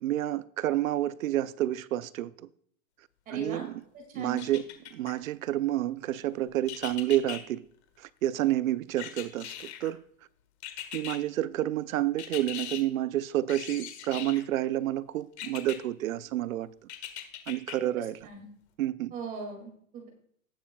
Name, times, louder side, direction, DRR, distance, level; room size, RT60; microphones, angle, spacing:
voice 1, 0.0-2.5 3.3-3.8 4.1-7.6 8.0-10.0 10.9-16.7 17.5-18.2 18.8-19.1, right 13 dB, 70° right, 0.6 m, -29 dB
voice 2, 3.3-3.7 3.9-4.4 18.0-18.5 19.1-20.1, right 4 dB, 20° right, 2.3 m, -39 dB
sound 1, 4.4-5.1 6.7-7.4 9.0-9.9 10.6-11.2 12.2-12.8 13.5-14.4 15.4-15.8 16.9-17.7 18.2-18.3, left 11 dB, 50° left, 1.6 m, -39 dB
17.5 x 7.1 x 2.3 m
hypercardioid pair, 160°, 42 cm